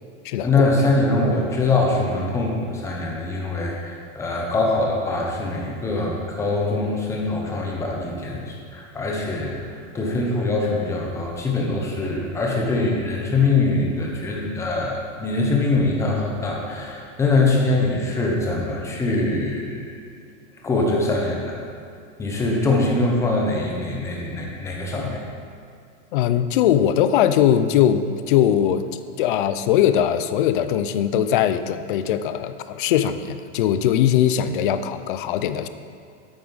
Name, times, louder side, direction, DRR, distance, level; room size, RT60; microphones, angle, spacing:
voice 1, 0.4-19.8 20.6-21.6 22.2-25.2, left 2 dB, 10° left, -1 dB, 0.8 m, -23 dB
voice 2, 26.1-28.8 29.2-35.7, left 10 dB, 45° left, 11 dB, 0.4 m, -20 dB
9.0 x 8.5 x 4.0 m, 2.4 s
supercardioid pair, 170°, 36 cm